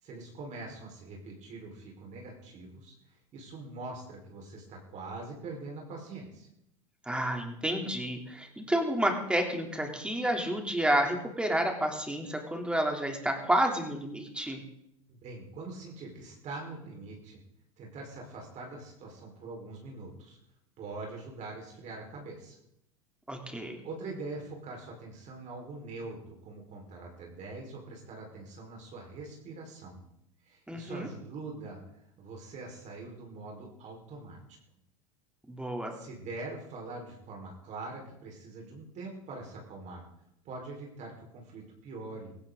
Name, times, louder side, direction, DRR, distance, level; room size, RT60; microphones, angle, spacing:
voice 1, 0.0-6.5 15.1-17.4 17.8-20.4 20.8-22.6 23.8-30.0 30.4-31.8 32.2-34.4 35.9-40.0 40.4-42.3, right 3 dB, 40° right, 0 dB, 4.7 m, -43 dB
voice 2, 7.0-14.6 23.3-23.8 30.7-31.1 35.5-35.9, right 1 dB, 5° right, 2 dB, 3.3 m, -30 dB
16.5 x 16.5 x 4.0 m, 0.77 s
hypercardioid pair, 100°, 18 cm